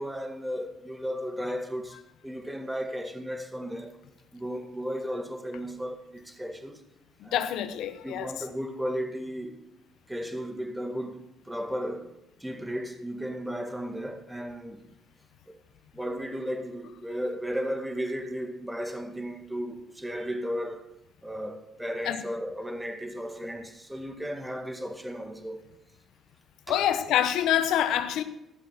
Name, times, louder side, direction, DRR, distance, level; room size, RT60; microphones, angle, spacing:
voice 1, 0.0-4.0 4.3-6.8 7.2-7.4 8.0-9.6 10.1-12.1 12.4-14.9 15.5-15.6 15.9-20.9 21.2-25.7 26.7-26.8, equal, 10° right, 2.0 m, -35 dB
voice 2, 7.2-8.3 22.1-22.2 26.7-28.2, left 10 dB, 85° left, 0.9 m, -26 dB
15.0 x 7.5 x 5.9 m
cardioid pair, 75°, 0 cm